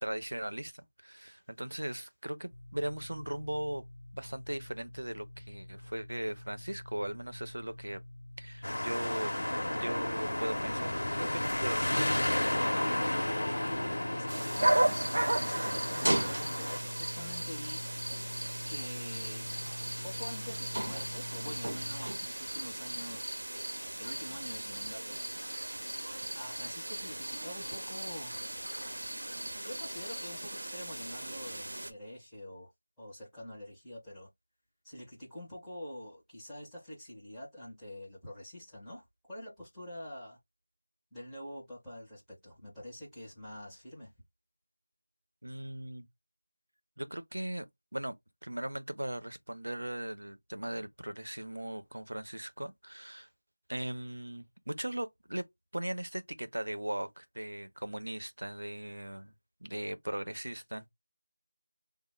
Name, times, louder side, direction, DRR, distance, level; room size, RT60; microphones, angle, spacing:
voice 1, 0.0-3.9 4.1-8.0 8.4-9.3 9.7-10.9 11.2-12.2 45.4-46.1 47.0-47.7 47.9-48.2 48.4-53.3 53.7-55.4 55.7-59.3 59.6-60.9, right 1 dB, 90° right, 0.7 m, -38 dB
sound 1, 2.5-22.1, left 1 dB, 55° left, 0.3 m, -46 dB
sound 2, 8.6-16.8, left 1 dB, 75° left, 0.7 m, -32 dB
voice 2, 13.2-17.8 18.7-19.5 20.0-23.4 24.0-25.2 26.3-28.5 29.6-32.7 33.0-34.3 34.8-40.4 41.1-44.1, left 1 dB, ahead, 0.5 m, -46 dB
sound 3, 14.3-31.9, right 1 dB, 55° right, 0.7 m, -35 dB
3.3 x 2.1 x 3.0 m
figure-of-eight pair, 180°, 0 cm